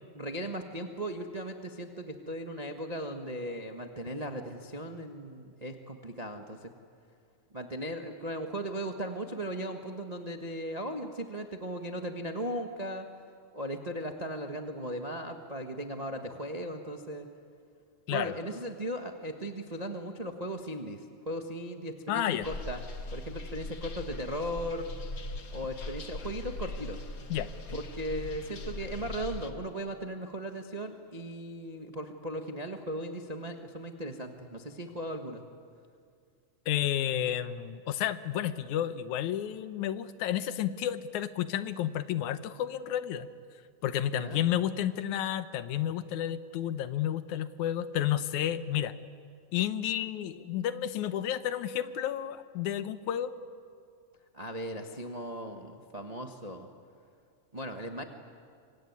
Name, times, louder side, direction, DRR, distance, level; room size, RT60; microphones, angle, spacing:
voice 1, 0.1-6.7 7.5-13.1 13.5-17.3 18.1-22.8 23.1-24.9 25.5-27.0 27.7-35.4 44.2-44.4 54.3-56.7 57.5-58.0, right 1 dB, 80° right, 4 dB, 0.3 m, -37 dB
voice 2, 22.1-22.5 27.3-27.8 36.7-43.3 43.8-48.9 49.5-53.4, left 11 dB, 85° left, 12 dB, 2.3 m, -31 dB
sound 1, 22.4-29.5, left 2 dB, 40° left, 1.3 m, -40 dB
25.0 x 25.0 x 9.5 m, 2.3 s
omnidirectional pair, 3.3 m